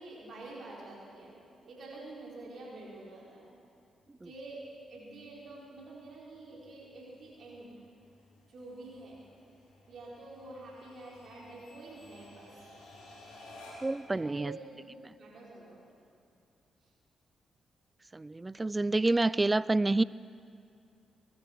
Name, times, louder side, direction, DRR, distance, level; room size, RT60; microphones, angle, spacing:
voice 1, 0.0-1.4 1.6-3.5 4.2-7.7 8.5-9.2 9.9-12.7 14.1-15.8 16.8-16.9, right 2 dB, 65° right, -5 dB, 5.0 m, -47 dB
sound 1, 3.9-14.1, left 1 dB, 85° left, 4.2 m, -56 dB
voice 2, 13.8-14.5 15.0-15.1 18.1-20.0, right 2 dB, 25° right, 19 dB, 0.4 m, -28 dB
22.5 x 13.5 x 4.7 m, 2.6 s
hypercardioid pair, 45°, 0 cm